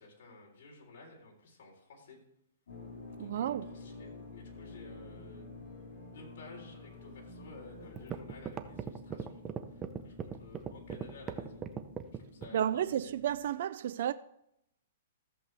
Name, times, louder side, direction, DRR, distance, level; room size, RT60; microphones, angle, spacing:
voice 1, 0.0-2.2 3.2-5.5 6.1-11.7 12.1-13.1, left 3 dB, 60° left, 3.8 m, -54 dB
sound 1, 2.7-13.5, left 3 dB, 85° left, 1.8 m, -51 dB
sound 2, 2.7-8.1, left 1 dB, 10° left, 3.9 m, -55 dB
voice 2, 3.2-3.7 12.5-14.1, right 10 dB, 55° right, 0.3 m, -32 dB
sound 3, 7.5-7.6 8.0-12.6, right 8 dB, 15° right, 0.6 m, -38 dB
14.0 x 7.6 x 3.4 m
hypercardioid pair, 160°, 0 cm